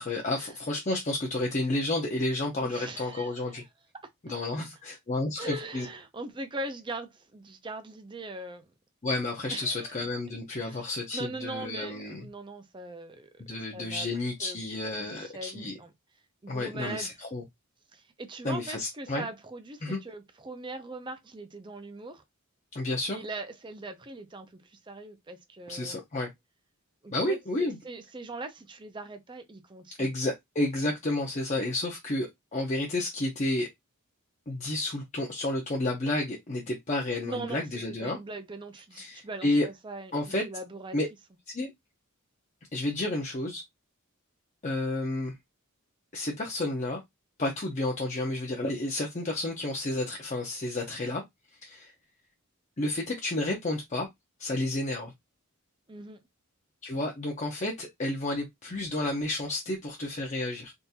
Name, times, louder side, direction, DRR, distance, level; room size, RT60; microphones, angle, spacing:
voice 1, 0.0-3.6 4.2-5.9 9.0-12.2 13.4-15.7 16.5-17.4 18.4-19.2 19.8-20.0 22.7-23.2 25.7-26.3 27.1-27.8 30.0-33.7 34.5-38.2 39.0-39.7 40.1-40.4 40.9-41.1 41.5-41.7 42.7-43.6 44.6-45.4 46.1-47.0 47.4-51.2 51.6-51.9 52.8-54.1 54.4-55.1 56.8-60.7, left 2 dB, 35° left, 0.6 m, -31 dB
voice 2, 2.6-3.6 5.4-8.7 9.5-9.9 10.5-14.1 14.4-14.6 15.0-15.9 16.4-17.1 17.9-22.2 23.1-26.0 27.0-30.1 37.2-37.7 38.0-40.1 40.4-41.0 55.9-56.2, right 2 dB, 20° right, 0.5 m, -41 dB
3.6 x 2.5 x 2.7 m
head